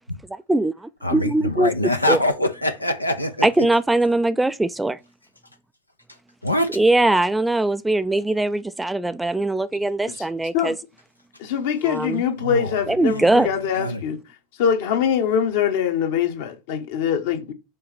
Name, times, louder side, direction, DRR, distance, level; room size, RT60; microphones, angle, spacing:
voice 1, 0.3-1.7 2.1-2.2 3.4-5.0 6.7-10.8 11.8-12.2 12.9-13.5, right 2 dB, 5° right, 0.3 m, -21 dB
voice 2, 1.0-3.5 6.4-6.7 12.4-12.7 13.0-13.2 13.8-14.0, left 1 dB, 85° left, 0.6 m, -24 dB
voice 3, 11.4-14.2 14.6-17.5, left 8 dB, 55° left, 1.2 m, -23 dB
5.3 x 4.0 x 5.9 m
figure-of-eight pair, 80°, 0 cm